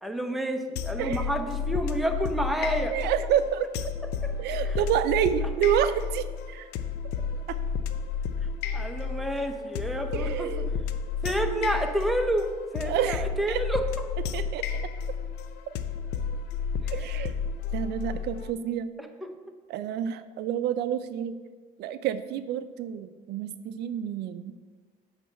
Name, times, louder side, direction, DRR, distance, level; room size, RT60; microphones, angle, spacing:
voice 1, 0.0-2.9 4.6-4.8 8.7-10.8 11.2-13.8 16.8-17.3 19.0-19.1, right 1 dB, ahead, 3 dB, 0.7 m, -29 dB
sound 1, 0.8-18.5, left 6 dB, 85° left, 0.5 m, -32 dB
voice 2, 1.0-1.3 2.9-3.7 4.4-6.7 7.5-7.6 10.1-10.7 11.4-11.7 12.9-13.6 14.3-14.6 16.9-17.3 17.7-18.9 19.7-21.4 21.8-24.5, right 10 dB, 75° right, 12 dB, 0.4 m, -29 dB
8.5 x 3.3 x 6.5 m, 1.5 s
cardioid pair, 110°, 17 cm